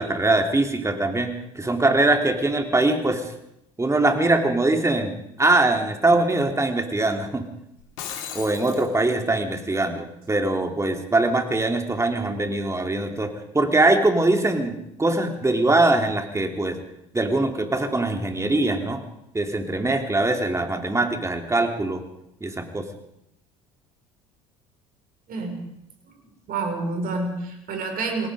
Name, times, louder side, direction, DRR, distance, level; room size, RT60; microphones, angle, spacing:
voice 1, 0.0-3.3 3.8-5.1 5.4-7.4 8.3-16.8 17.1-19.0 19.3-22.0 22.4-22.9, right 2 dB, 15° right, 5 dB, 3.5 m, -22 dB
Shatter, 7.8-8.9, left 8 dB, 75° left, 3.6 m, -35 dB
voice 2, 25.3-25.6 26.1-26.2 26.5-28.3, right 3 dB, 55° right, 3 dB, 6.1 m, -28 dB
28.0 x 19.0 x 5.2 m, 0.81 s
hypercardioid pair, 65°, 18 cm